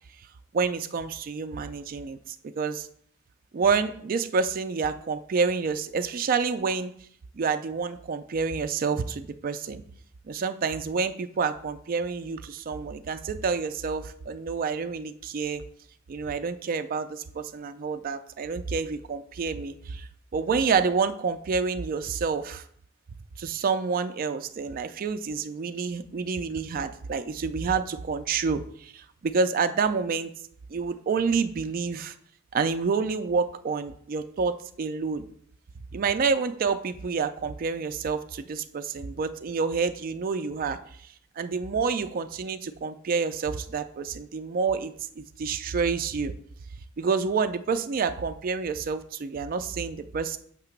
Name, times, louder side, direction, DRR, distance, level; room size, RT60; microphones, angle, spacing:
voice 1, 0.5-2.9 3.5-6.9 7.3-9.8 10.3-15.7 16.1-22.6 23.4-30.3 30.7-32.1 32.5-35.3 35.9-40.8 41.4-46.3 47.0-50.4, right 5 dB, 45° right, 9 dB, 0.4 m, -28 dB
6.6 x 2.9 x 5.8 m, 0.63 s
head